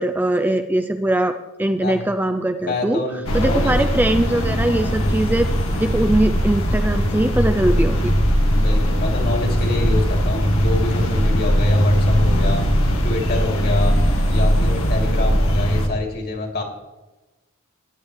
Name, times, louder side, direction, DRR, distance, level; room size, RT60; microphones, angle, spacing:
voice 1, 0.0-3.0 3.3-5.5 5.8-8.1, right 1 dB, 10° right, 7 dB, 0.5 m, -21 dB
voice 2, 2.6-3.7 8.5-12.6 13.0-14.0 14.3-16.6, left 2 dB, 50° left, 1 dB, 3.0 m, -27 dB
sound 1, 3.3-15.9, equal, 70° left, 2.1 m, -19 dB
17.5 x 11.0 x 3.3 m, 1.1 s
head